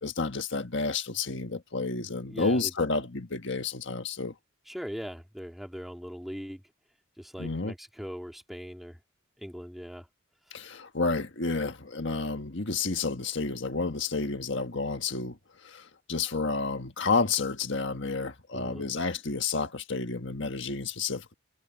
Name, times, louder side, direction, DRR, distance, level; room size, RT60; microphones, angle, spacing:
voice 1, 0.0-4.3 7.4-7.7 10.5-21.3, left 4 dB, 55° left, 1.6 m, -30 dB
voice 2, 2.3-2.7 4.7-6.6 7.2-9.0 9.4-10.1 10.5-10.6 18.5-18.8, equal, ahead, 3.1 m, -40 dB
head